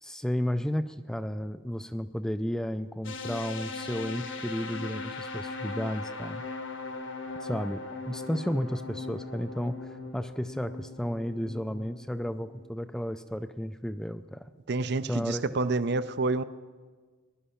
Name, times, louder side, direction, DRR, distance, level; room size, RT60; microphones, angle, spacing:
voice 1, 0.0-6.4 7.4-14.5 15.1-15.4, equal, 5° left, 11 dB, 0.3 m, -33 dB
sound 1, 3.0-12.9, left 3 dB, 75° left, 1.5 m, -39 dB
voice 2, 14.7-16.4, right 3 dB, 55° right, 13 dB, 0.5 m, -28 dB
20.0 x 11.5 x 5.7 m, 1.4 s
head